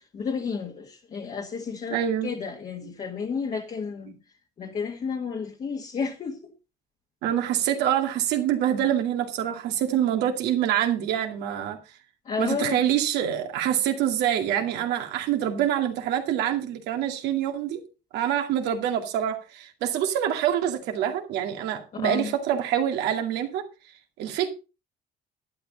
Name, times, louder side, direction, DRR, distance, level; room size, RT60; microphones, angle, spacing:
voice 1, 0.0-4.2 4.6-6.5 12.2-12.8 21.9-22.3, left 5 dB, 45° left, 1.7 m, -32 dB
voice 2, 1.9-2.3 7.2-11.8 12.4-17.8 18.1-23.6 24.2-24.5, right 10 dB, 85° right, 2.3 m, -26 dB
11.5 x 10.0 x 4.0 m
cardioid pair, 110°, 17 cm